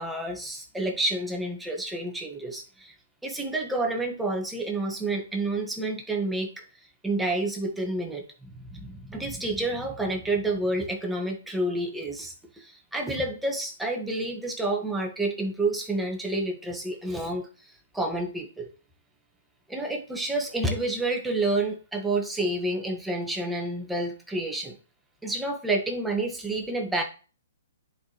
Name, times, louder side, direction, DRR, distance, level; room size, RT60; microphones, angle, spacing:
voice 1, 0.0-2.9 3.2-6.6 7.0-18.7 19.7-24.8 25.2-27.0, right 2 dB, 5° right, 1 dB, 1.4 m, -29 dB
10.0 x 4.9 x 3.0 m, 0.37 s
hypercardioid pair, 130°, 0 cm